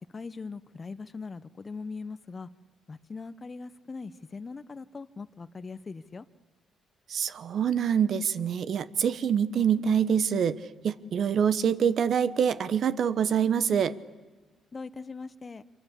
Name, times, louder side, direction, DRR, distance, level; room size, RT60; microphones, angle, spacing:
voice 1, 0.1-2.5 2.9-6.2 14.7-15.6, left 4 dB, 30° left, 13 dB, 0.9 m, -40 dB
voice 2, 7.1-10.6 10.8-14.0, right 8 dB, 60° right, 15 dB, 1.1 m, -25 dB
25.5 x 23.5 x 8.2 m, 1.3 s
cardioid pair, 90°, 0 cm